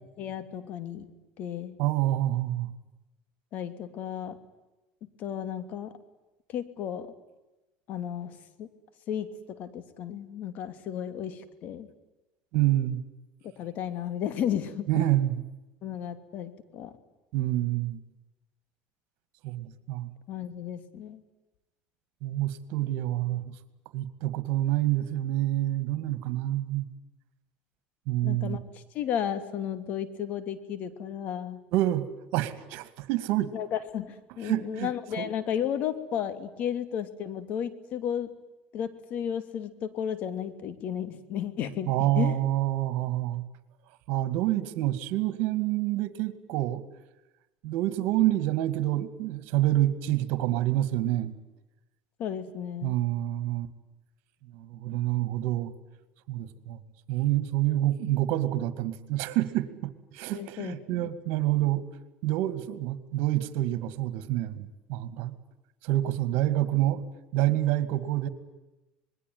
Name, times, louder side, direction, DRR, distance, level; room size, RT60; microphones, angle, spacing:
voice 1, 0.2-1.1 1.4-1.7 3.5-4.4 5.2-5.9 6.5-7.1 7.9-8.7 9.1-9.3 9.6-11.9 13.6-15.1 15.8-16.9 20.3-21.2 28.2-31.6 33.5-38.3 38.7-42.3 52.2-53.0 60.3-61.1, left 9 dB, 55° left, 11 dB, 2.9 m, -33 dB
voice 2, 1.8-2.7 12.5-13.0 14.9-15.4 17.3-18.0 19.4-20.1 22.2-23.4 23.9-26.9 28.1-28.6 31.7-33.5 34.4-35.3 41.9-43.4 44.1-46.8 47.6-51.3 52.8-53.7 54.5-55.7 56.3-56.8 57.1-61.8 62.2-65.3 65.8-67.0 67.3-68.3, right 14 dB, 70° right, 13 dB, 2.3 m, -27 dB
27.0 x 21.5 x 9.6 m, 1.0 s
supercardioid pair, 110°, 3 cm